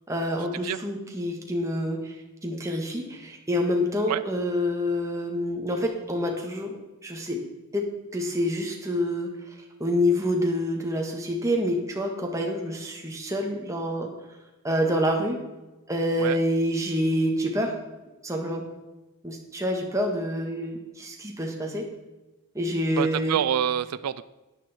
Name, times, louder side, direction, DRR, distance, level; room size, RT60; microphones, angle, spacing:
voice 1, 0.1-6.8 7.0-7.4 7.7-14.1 14.6-15.4 15.9-17.7 18.2-18.6 19.2-21.9 22.5-23.4, equal, 15° right, 1 dB, 1.6 m, -27 dB
voice 2, 22.9-24.2, right 9 dB, 90° right, 15 dB, 0.4 m, -27 dB
12.5 x 9.4 x 4.4 m, 1.1 s
head